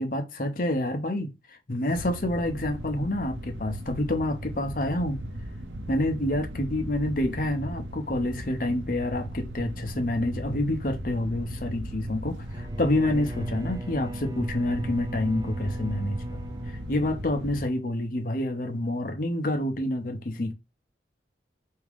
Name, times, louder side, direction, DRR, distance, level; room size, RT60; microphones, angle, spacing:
voice 1, 0.0-5.2 5.9-20.5, left 1 dB, 50° left, 0.7 m, -28 dB
sound 1, 1.9-17.7, equal, 90° right, 0.8 m, -37 dB
Bowed string instrument, 12.4-17.8, right 1 dB, 20° right, 0.3 m, -40 dB
3.5 x 2.8 x 3.4 m
head